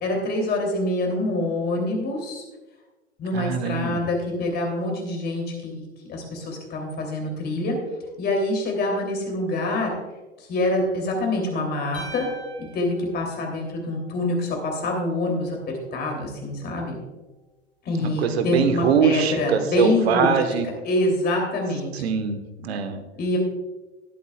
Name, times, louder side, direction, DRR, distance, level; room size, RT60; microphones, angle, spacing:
voice 1, 0.0-2.4 3.2-5.8 6.1-7.7 8.2-9.9 10.5-12.3 12.7-15.6 15.9-17.0 17.8-20.4 20.8-21.9 23.2-23.4, left 2 dB, 25° left, 1 dB, 3.1 m, -25 dB
voice 2, 3.3-4.0 17.9-20.7 21.9-23.0, right 6 dB, 60° right, 8 dB, 1.4 m, -23 dB
sound 1, 11.9-14.2, right 1 dB, 90° left, 3.5 m, -42 dB
19.0 x 8.4 x 2.4 m, 1.1 s
figure-of-eight pair, 95°, 36 cm